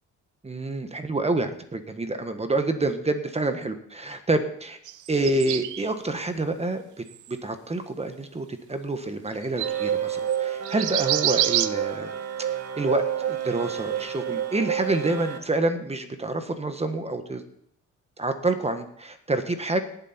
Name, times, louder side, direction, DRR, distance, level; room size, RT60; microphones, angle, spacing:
voice 1, 0.4-4.8 5.1-6.8 7.3-12.1 12.8-17.4 18.2-19.8, right 2 dB, 20° right, 8 dB, 1.4 m, -27 dB
sound 1, 4.9-5.9 7.1-7.3 7.9-8.0 9.3-9.4 9.6-9.9 10.3-10.4 10.7-11.7, right 13 dB, 80° right, 0.7 m, -27 dB
sound 2, 9.6-15.4, right 9 dB, 55° right, 1.6 m, -29 dB
18.0 x 8.0 x 4.4 m, 0.68 s
cardioid pair, 90°, 30 cm